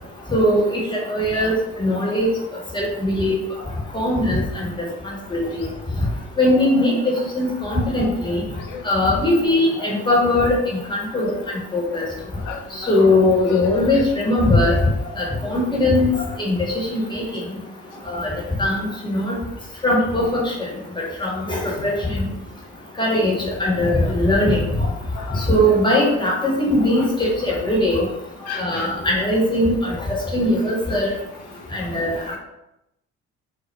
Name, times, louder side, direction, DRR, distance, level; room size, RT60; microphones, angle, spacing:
voice 1, 0.3-2.3 2.7-3.4 3.9-4.7 5.3-5.7 6.4-8.4 8.8-11.4 11.7-12.0 12.8-14.8 15.2-16.6 16.9-17.4 18.1-18.3 18.6-19.4 19.8-20.7 21.0-22.3 23.0-24.9 25.3-28.0 28.6-29.9 30.3-31.1 31.7-32.2, left 1 dB, 10° left, -4 dB, 0.9 m, -20 dB
voice 2, 8.5-8.9 9.8-10.1 11.9-12.0 12.4-13.0 13.5-13.6 13.9-14.0 21.8-21.9 24.0-24.1 25.1-25.8 26.8-27.1 27.5-27.6 28.5-28.9 29.6-29.7 29.9-30.0 30.6-30.7 31.5-32.0 32.3-32.4, left 6 dB, 50° left, 5 dB, 0.5 m, -36 dB
2.1 x 2.0 x 3.2 m, 0.88 s
figure-of-eight pair, 40°, 40 cm